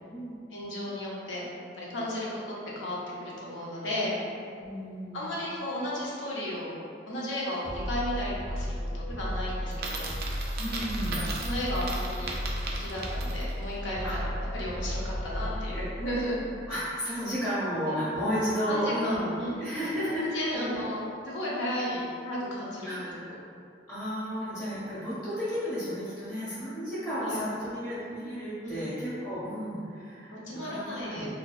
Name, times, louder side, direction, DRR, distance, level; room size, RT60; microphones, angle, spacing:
voice 1, 0.5-1.4 1.8-4.2 5.1-6.7 7.1-10.1 11.1-12.3 12.8-14.3 14.5-16.4 17.6-17.9 18.7-19.6 20.1-23.4 24.4-24.5 27.2-27.4 28.6-28.8 30.3-31.3, left 1 dB, 75° left, -6 dB, 0.6 m, -34 dB
voice 2, 4.6-5.2 10.6-11.2 14.0-14.2 16.7-19.3 19.6-20.7 21.5-21.6 22.9-23.3 23.9-30.3 30.6-31.3, equal, 15° left, -14 dB, 0.8 m, -32 dB
sound 1, 7.6-16.7, equal, 45° left, 0.8 m, -34 dB
Coin (dropping), 9.7-13.6, right 3 dB, 55° right, 0.3 m, -37 dB
2.5 x 2.2 x 2.2 m, 2.4 s
head